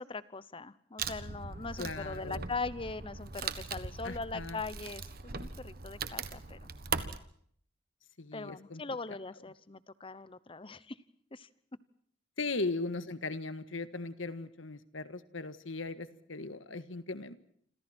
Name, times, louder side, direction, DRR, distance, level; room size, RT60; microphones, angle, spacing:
voice 1, 0.0-6.7 8.3-11.0 11.3-11.5, left 3 dB, 25° left, 16 dB, 0.9 m, -41 dB
Wood, 1.0-7.2, right 5 dB, 50° right, 1.5 m, -40 dB
voice 2, 1.8-2.4 4.0-4.6 8.2-9.0 12.4-17.3, left 3 dB, 80° left, 12 dB, 1.7 m, -38 dB
28.0 x 27.0 x 4.5 m, 0.63 s
head